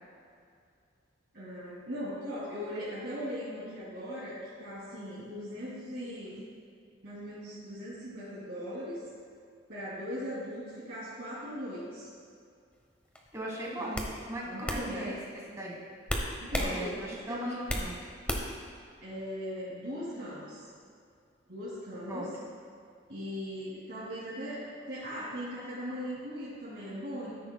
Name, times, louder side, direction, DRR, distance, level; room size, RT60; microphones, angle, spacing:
voice 1, 1.3-6.4 7.0-9.0 9.7-12.1 13.8-13.9 14.5-15.1 16.4-17.6 19.0-20.7 21.5-22.3 23.1-27.4, equal, 65° right, -10 dB, 2.5 m, -39 dB
sound 1, 13.2-13.4 13.9-14.1 14.7-14.8 16.1-16.7 17.1-17.9 18.3-18.6, equal, 5° left, 0.9 m, -31 dB
voice 2, 13.3-15.8 16.5-18.0 22.1-22.5, right 1 dB, 15° right, -3 dB, 1.3 m, -38 dB
13.0 x 10.0 x 2.2 m, 2.3 s
head